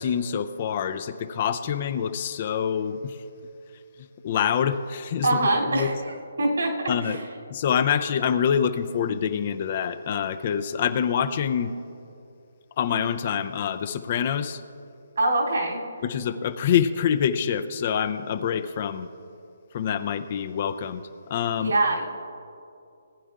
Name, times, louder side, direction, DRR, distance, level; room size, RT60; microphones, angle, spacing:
voice 1, 0.0-3.2 4.2-5.9 6.9-7.2 7.5-11.7 12.8-14.6 16.0-19.1 19.7-21.0 21.3-21.8, left 8 dB, 40° left, 11 dB, 0.5 m, -26 dB
voice 2, 5.2-5.9 6.4-6.7 7.0-7.2 15.2-15.8 21.6-22.0, right 2 dB, 75° right, -2 dB, 2.8 m, -23 dB
18.5 x 9.8 x 2.5 m, 2.6 s
figure-of-eight pair, 145°, 0 cm